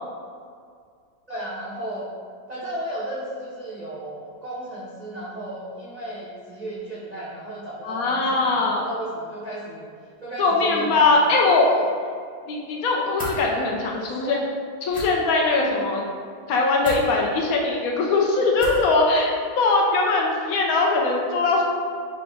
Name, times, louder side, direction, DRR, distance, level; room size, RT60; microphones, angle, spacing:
voice 1, 1.3-2.1 2.5-9.9 10.2-11.9 13.9-14.4, right 1 dB, 60° right, -8 dB, 0.4 m, -34 dB
voice 2, 7.8-8.8 10.4-11.7 12.5-14.4 14.8-16.0 16.5-21.6, left 3 dB, 70° left, -1 dB, 1.0 m, -21 dB
sound 1, 13.1-13.4 14.9-15.1 16.8-17.0 18.6-18.9, equal, 10° left, 0.5 m, -33 dB
5.0 x 2.5 x 3.4 m, 2.1 s
omnidirectional pair, 1.7 m